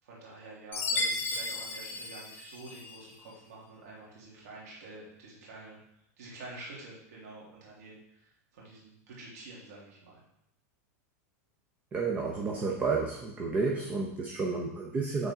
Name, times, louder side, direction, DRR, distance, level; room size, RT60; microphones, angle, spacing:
voice 1, 0.0-5.8 6.2-10.2, right 2 dB, 85° right, -5 dB, 2.7 m, -48 dB
Chime, 0.7-3.0, left 2 dB, 20° left, 1.0 m, -34 dB
voice 2, 11.9-15.3, right 4 dB, 20° right, -1 dB, 0.7 m, -31 dB
8.9 x 3.8 x 3.6 m, 0.80 s
supercardioid pair, 160°, 9 cm